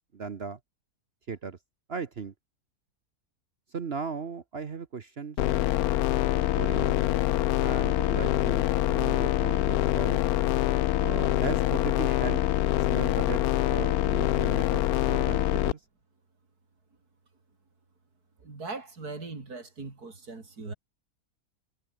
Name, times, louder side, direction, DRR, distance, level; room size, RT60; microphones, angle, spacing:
voice 1, 0.1-0.6 1.3-1.6 1.9-2.3 3.7-5.4 6.6-7.2 7.6-10.2 11.0-12.4 12.8-13.4 13.7-15.8, right 5 dB, 45° right, 1.2 m, -37 dB
sound 1, 5.4-15.7, left 13 dB, 75° left, 1.1 m, -25 dB
voice 2, 18.4-20.7, right 3 dB, 85° right, 4.3 m, -40 dB
omnidirectional pair, 1.6 m